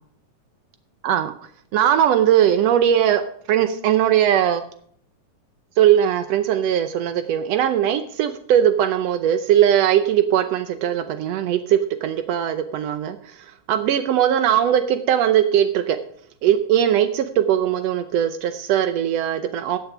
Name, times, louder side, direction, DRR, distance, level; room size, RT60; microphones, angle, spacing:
voice 1, 1.7-3.2 3.5-4.6 5.8-16.0 16.4-19.8, right 10 dB, 90° right, 10 dB, 1.4 m, -19 dB
15.0 x 8.3 x 4.9 m, 0.63 s
omnidirectional pair, 3.9 m